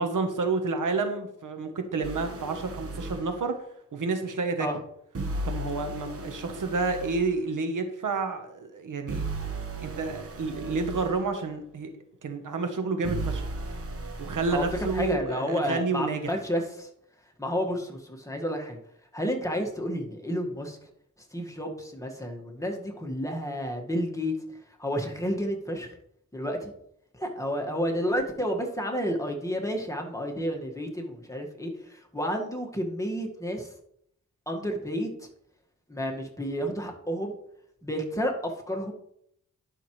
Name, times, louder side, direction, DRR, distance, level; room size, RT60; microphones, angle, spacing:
voice 1, 0.0-3.6 3.9-4.7 5.4-9.3 9.8-11.9 12.2-13.5 14.2-16.4, right 4 dB, 75° right, 7 dB, 1.1 m, -29 dB
sound 1, 2.0-3.3 5.2-7.3 9.1-11.2 13.0-15.2, right 2 dB, 45° right, 1.3 m, -35 dB
voice 2, 14.9-16.9 17.4-18.8 19.1-20.8 21.3-24.3 24.8-25.9 26.3-26.7 27.1-33.7 34.5-35.1 35.9-37.3 37.8-38.9, equal, 10° left, 1 dB, 1.7 m, -31 dB
11.5 x 5.9 x 3.2 m, 0.72 s
cardioid pair, 65°, 32 cm